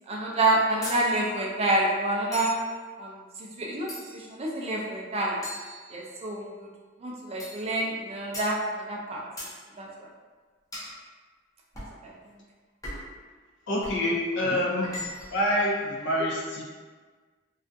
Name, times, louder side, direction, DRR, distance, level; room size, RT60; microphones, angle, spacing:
voice 1, 0.1-2.5 3.0-3.2 3.6-5.4 5.9-6.7 7.0-9.2 9.8-9.9 12.0-12.1, right 2 dB, 30° right, -2 dB, 0.4 m, -28 dB
sound 1, 0.8-1.1 2.3-2.7 3.9-4.3 5.4-6.3 7.4-7.7 8.3-8.6 9.4-9.6 10.7-11.0 11.7-12.0 12.8-13.2 13.8-14.0 14.8-15.4, left 1 dB, 20° left, 0.7 m, -39 dB
voice 2, 13.7-15.0 15.3-16.6, left 1 dB, 65° left, -4 dB, 0.6 m, -26 dB
2.4 x 2.2 x 2.5 m, 1.4 s
head